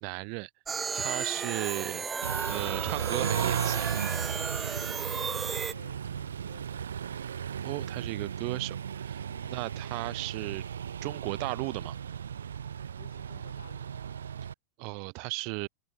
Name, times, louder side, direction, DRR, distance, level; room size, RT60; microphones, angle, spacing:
voice 1, 0.0-0.5 0.9-2.1 2.5-3.9 7.6-10.6 11.0-11.9 14.8-15.7, right 40 dB or more, 45° right, 1.4 m, -35 dB
sound 1, 0.7-5.7, right 5 dB, 15° right, 0.4 m, -34 dB
Car / Idling / Accelerating revving vroom, 2.2-14.5, right 8 dB, 65° right, 0.5 m, -35 dB
voice 2, 5.3-6.9 9.3-9.5 13.0-13.9, left 7 dB, 70° left, 2.1 m, -54 dB
figure-of-eight pair, 90°, 0 cm